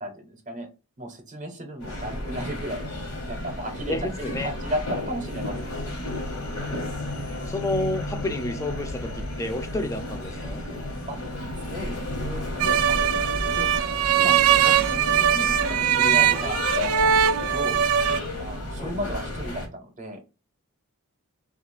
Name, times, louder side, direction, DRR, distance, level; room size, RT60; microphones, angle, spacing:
voice 1, 0.0-0.7 1.0-2.9 3.3-5.9 11.1-11.2 11.6-13.7 14.2-16.6 16.9-17.8 18.4-20.2, equal, 35° right, 0.6 m, -35 dB
sound 1, 1.8-19.7, left 1 dB, 85° left, 1.0 m, -33 dB
voice 2, 3.9-4.5 6.7-7.1 7.5-10.6 18.8-18.9, left 1 dB, 15° left, 0.3 m, -30 dB
sound 2, 4.8-13.2, left 2 dB, 65° left, 0.6 m, -40 dB
sound 3, 12.6-18.2, right 9 dB, 80° right, 0.3 m, -21 dB
2.3 x 2.2 x 3.0 m
head